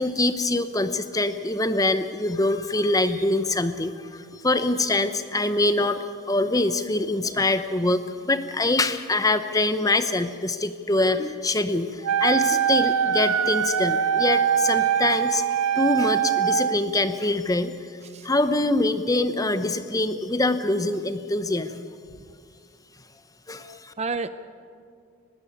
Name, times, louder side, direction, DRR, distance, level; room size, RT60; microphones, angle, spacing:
voice 1, 0.0-21.8 23.5-23.9, left 2 dB, 15° left, 10 dB, 0.8 m, -24 dB
Wind instrument woodwind instrument, 12.0-16.8, right 8 dB, 80° right, 0.8 m, -22 dB
voice 2, 24.0-24.3, right 4 dB, 30° right, 12 dB, 0.6 m, -31 dB
20.0 x 17.0 x 8.7 m, 2.3 s
head